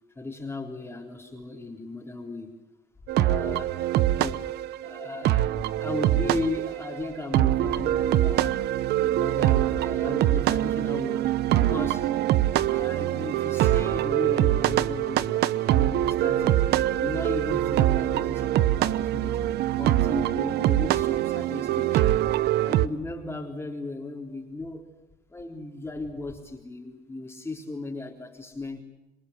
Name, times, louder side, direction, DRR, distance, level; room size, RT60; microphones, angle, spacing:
voice 1, 0.2-2.6 3.2-3.8 4.2-4.5 4.8-5.5 5.8-8.7 9.0-11.2 11.6-12.1 12.7-16.6 17.0-19.4 19.8-22.1 22.6-24.8 25.3-28.8, left 2 dB, 15° left, 0 dB, 3.7 m, -36 dB
sound 1, 3.1-22.9, right 13 dB, 75° right, 1.0 m, -24 dB
27.0 x 22.5 x 8.3 m, 0.97 s
cardioid pair, 110°, 17 cm